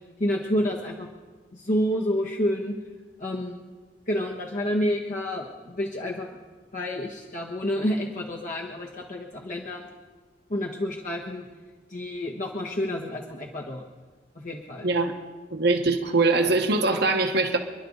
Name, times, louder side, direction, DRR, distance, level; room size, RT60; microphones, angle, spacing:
voice 1, 0.2-1.1 1.5-2.8 3.2-3.6 4.1-6.3 6.7-9.9 10.5-11.4 11.9-13.8 14.3-14.9, equal, 45° left, -1 dB, 1.4 m, -29 dB
voice 2, 15.5-17.6, right 3 dB, 65° right, 4 dB, 1.4 m, -22 dB
28.5 x 11.0 x 4.0 m, 1.4 s
head